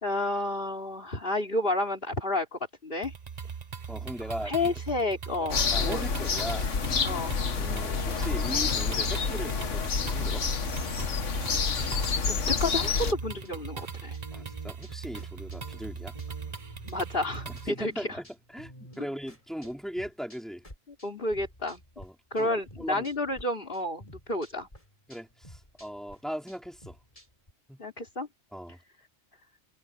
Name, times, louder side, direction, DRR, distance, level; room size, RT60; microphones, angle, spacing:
voice 1, 0.0-3.1 4.4-6.0 7.0-7.4 11.4-12.0 12.3-14.2 16.9-18.0 21.0-21.8 22.3-24.7 27.8-28.3, left 2 dB, 45° left, 4.0 m, -31 dB
sound 1, 3.0-17.7, right 6 dB, 35° right, 1.0 m, -40 dB
voice 2, 3.9-4.7 5.4-6.7 7.5-10.4 14.3-16.2 17.5-20.6 22.0-23.1 25.1-27.0 27.7-27.8 28.5-28.8, equal, ahead, 3.8 m, -39 dB
sound 2, 5.5-13.1, left 5 dB, 70° left, 1.7 m, -28 dB
sound 3, 13.1-22.1 22.4-23.4 23.7-27.5, equal, 25° left, 6.5 m, -51 dB
omnidirectional pair, 1.3 m